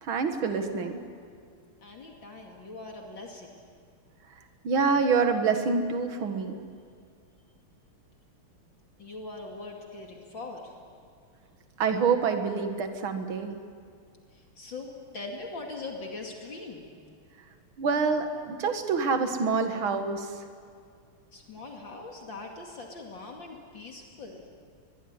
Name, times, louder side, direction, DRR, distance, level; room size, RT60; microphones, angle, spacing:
voice 1, 0.0-1.0 4.6-6.6 11.8-13.5 17.8-20.3, right 5 dB, 65° right, 6 dB, 2.5 m, -26 dB
voice 2, 1.8-3.5 9.0-10.7 14.3-16.8 21.3-24.5, left 3 dB, 60° left, 1 dB, 3.1 m, -41 dB
24.0 x 22.0 x 9.7 m, 2.2 s
omnidirectional pair, 2.4 m